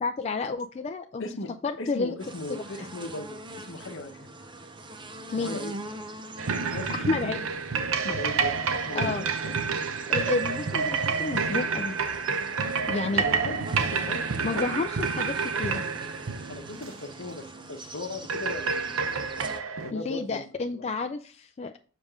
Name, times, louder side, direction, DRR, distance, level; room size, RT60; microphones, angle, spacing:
voice 1, 0.0-1.3 1.6-2.1 2.5-2.6 5.3-5.6 6.9-7.4 8.9-9.2 10.1-12.0 12.9-13.2 14.4-15.8 19.9-21.7, left 3 dB, 30° left, 6 dB, 0.4 m, -30 dB
voice 2, 1.2-1.5 1.8-4.3 5.2-5.9 6.5-7.3 8.0-8.5 8.9-9.5 13.2-14.7 16.5-19.2 19.8-20.9, left 2 dB, 65° left, 6 dB, 1.0 m, -38 dB
sound 1, 2.2-19.6, right 2 dB, 25° right, 0.7 m, -43 dB
sound 2, 6.4-17.1 18.3-19.9, right 5 dB, 75° right, 0.7 m, -29 dB
7.3 x 5.0 x 3.6 m, 0.40 s
head